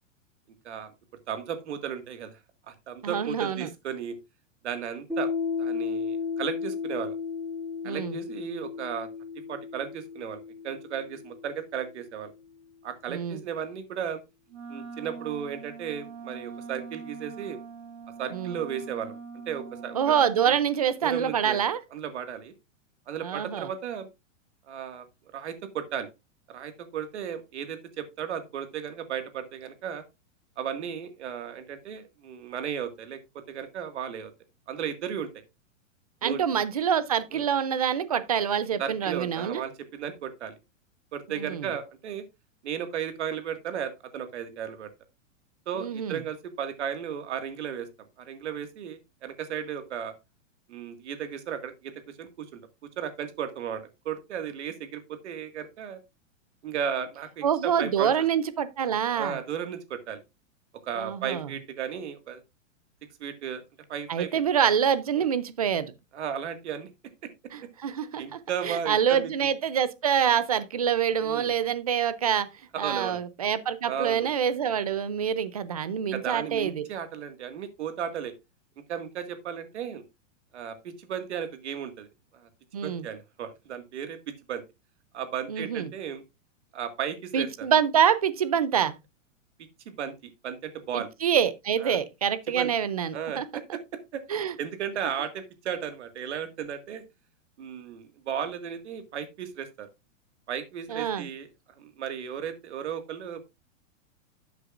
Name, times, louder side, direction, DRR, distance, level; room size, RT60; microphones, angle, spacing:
voice 1, 1.3-2.3 2.7-4.2 4.6-5.3 5.6-7.2 7.8-9.1 9.5-12.3 12.8-14.2 14.7-17.6 18.2-19.2 19.5-20.2 20.5-20.6 21.0-21.6 21.9-22.5 23.1-24.1 24.7-25.1 25.3-26.1 26.5-30.0 30.6-34.3 34.7-35.3 36.2-36.4 37.3-37.5 38.8-40.5 41.1-42.2 42.6-44.9 45.7-47.9 48.2-50.1 50.7-52.6 53.0-56.0 56.6-58.1 59.1-60.2 60.8-62.4 63.2-63.6 63.9-64.4 65.2-65.3 66.1-66.9 68.2-69.3 71.2-71.5 72.7-73.2 73.9-74.3 76.1-78.3 78.9-80.0 80.5-82.1 82.3-82.5 82.8-84.2 84.5-84.6 85.1-86.2 86.7-87.7 89.9-91.1 91.8-92.0 92.6-92.7 93.1-93.8 94.1-94.2 94.6-97.0 97.6-99.9 100.5-101.5 101.8-103.4, right 8 dB, 60° right, 2.0 m, -35 dB
voice 2, 3.0-3.7 7.8-8.2 13.1-13.4 18.3-18.6 19.9-21.8 23.2-23.7 36.2-39.6 41.4-41.7 45.8-46.2 57.4-59.4 61.0-61.5 64.1-65.9 67.5-72.5 72.8-76.9 82.7-83.0 85.5-85.9 87.3-88.9 90.9-93.5 94.3-94.5 100.9-101.3, right 8 dB, 30° right, 0.4 m, -26 dB
Piano, 5.1-12.3, left 5 dB, 5° right, 5.8 m, -34 dB
Wind instrument woodwind instrument, 14.5-20.5, right 5 dB, 80° right, 4.2 m, -42 dB
12.0 x 8.1 x 2.5 m
supercardioid pair, 180°, 39 cm